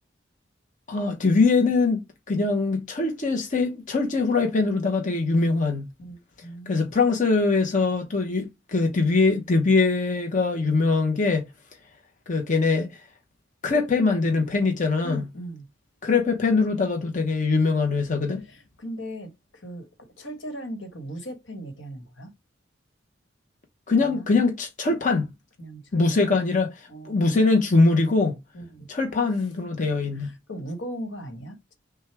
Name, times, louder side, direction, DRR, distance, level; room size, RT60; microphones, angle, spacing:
voice 1, 0.9-5.8 6.7-11.4 12.3-13.0 13.6-15.2 16.0-18.4 23.9-25.3 25.9-28.4 28.9-30.3, left 3 dB, 45° left, 0.9 m, -22 dB
voice 2, 6.0-6.9 15.0-15.7 18.4-19.9 20.2-22.3 24.0-24.3 25.6-26.4 26.9-27.4 28.5-28.9 30.1-31.7, right 1 dB, 75° left, 1.4 m, -38 dB
6.2 x 2.3 x 3.4 m
head